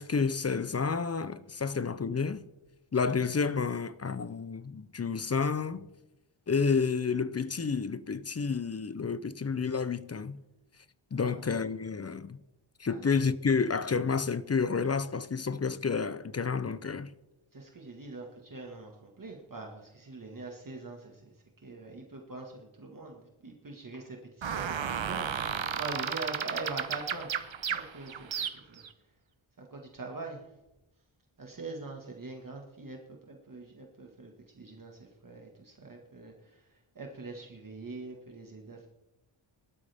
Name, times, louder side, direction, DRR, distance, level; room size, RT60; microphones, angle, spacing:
voice 1, 0.0-2.4 2.9-5.9 6.5-10.4 11.1-12.4 12.8-17.1, left 5 dB, 30° left, 0.5 m, -30 dB
voice 2, 17.5-21.3 21.6-27.3 27.7-28.8 29.6-30.4 31.4-36.7 37.0-38.9, right 3 dB, 40° right, 1.8 m, -43 dB
sound 1, 24.4-28.9, right 7 dB, 65° right, 1.0 m, -33 dB
18.5 x 12.5 x 3.5 m
wide cardioid pair, 115°, 50 cm